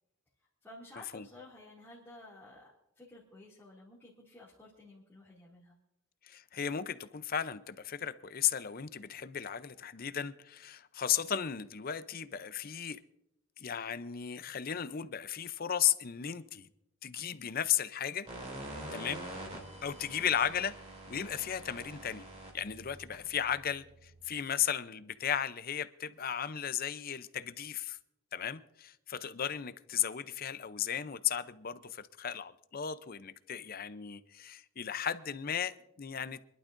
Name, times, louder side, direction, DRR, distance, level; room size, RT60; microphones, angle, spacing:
voice 1, 0.6-5.7, left 1 dB, 10° left, 2.4 m, -53 dB
voice 2, 6.2-13.0 13.6-16.7 17.0-18.3 18.9-19.2 19.8-20.8 21.1-22.2 22.5-28.0 28.3-36.5, left 9 dB, 45° left, 0.6 m, -35 dB
sound 1, 18.3-24.3, right 1 dB, 30° right, 3.0 m, -46 dB
26.0 x 11.5 x 2.6 m
head